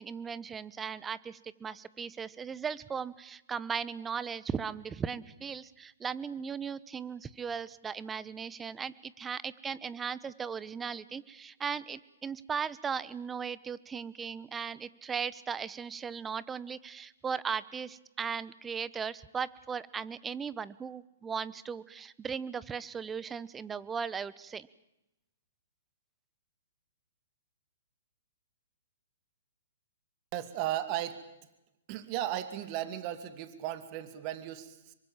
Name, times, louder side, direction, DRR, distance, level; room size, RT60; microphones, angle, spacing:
voice 1, 0.0-24.7, right 6 dB, 15° right, 18 dB, 1.0 m, -37 dB
voice 2, 30.3-31.2 31.9-34.9, right 12 dB, 35° right, 11 dB, 2.5 m, -35 dB
26.5 x 23.5 x 7.4 m, 0.91 s
hypercardioid pair, 125°, 0 cm